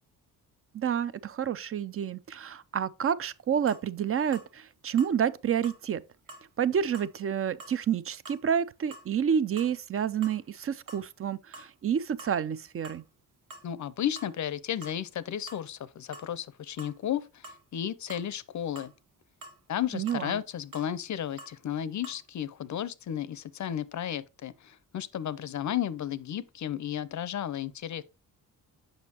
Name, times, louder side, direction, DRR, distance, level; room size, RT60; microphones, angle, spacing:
voice 1, 0.7-6.0 6.6-13.0 19.9-20.4, right 8 dB, 35° right, 0.4 m, -29 dB
sound 1, 3.7-3.8 4.3-4.5 5.0-5.2 5.6-5.8 6.3-6.5 6.9-7.1 7.6-7.8 8.2-8.4 8.9-9.1 9.6-9.7 10.1-10.5 10.9-11.1 11.5-11.7 12.2-12.4 12.8-13.0 13.5-13.7 14.2-14.3 14.8-15.0 15.5-15.6 16.1-16.3 16.8-17.0 17.4-17.6 18.1-18.3 18.8-18.9 19.4-19.6 20.1-20.3 20.7-20.9 21.4-21.6 22.0-22.2, right 2 dB, 55° right, 1.4 m, -47 dB
voice 2, 13.6-17.2 17.7-18.9 19.7-28.0, left 10 dB, 50° left, 0.6 m, -33 dB
6.4 x 5.1 x 2.8 m
cardioid pair, 65°, 39 cm